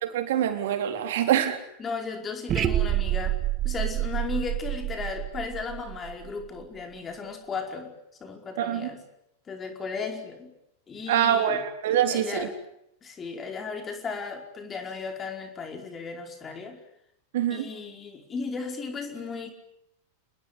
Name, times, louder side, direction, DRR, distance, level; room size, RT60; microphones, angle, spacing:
voice 1, 0.0-1.6 8.6-8.9 11.1-12.5 17.3-17.7, right 10 dB, 55° right, 7 dB, 3.9 m, -25 dB
voice 2, 1.8-3.3 3.6-7.9 8.2-9.0 9.5-10.5 10.9-11.6 12.1-12.5 13.0-16.8 17.5-19.5, left 5 dB, 20° left, 4 dB, 5.0 m, -35 dB
sound 1, 2.5-6.6, right 14 dB, 30° right, 1.8 m, -28 dB
28.0 x 20.5 x 9.8 m, 0.77 s
figure-of-eight pair, 90°, 0 cm